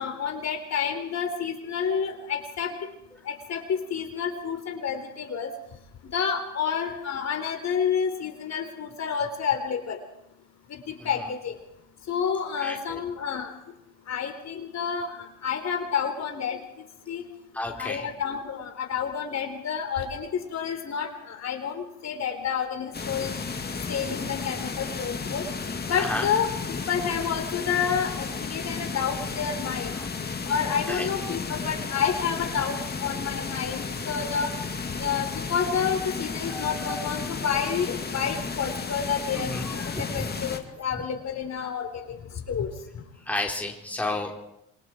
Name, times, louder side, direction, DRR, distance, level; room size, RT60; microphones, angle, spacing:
voice 1, 0.0-2.7 3.3-5.5 6.1-10.0 10.7-11.5 12.1-13.5 14.1-15.1 15.4-16.6 17.1-17.2 17.8-23.4 23.9-25.4 25.9-29.9 30.5-34.5 35.0-39.8 40.1-42.0 42.5-42.7, left 7 dB, 60° left, 4 dB, 4.1 m, -29 dB
voice 2, 12.6-13.0 17.5-18.1 26.0-26.3 29.9-30.1 30.9-31.4 36.5-37.1 39.3-40.3 40.9-41.1 41.6-41.7 43.3-44.3, left 2 dB, 5° left, 0 dB, 4.0 m, -33 dB
sound 1, 22.9-40.6, left 4 dB, 30° left, 2.4 m, -33 dB
27.0 x 23.5 x 4.6 m, 0.84 s
cardioid pair, 90°, 30 cm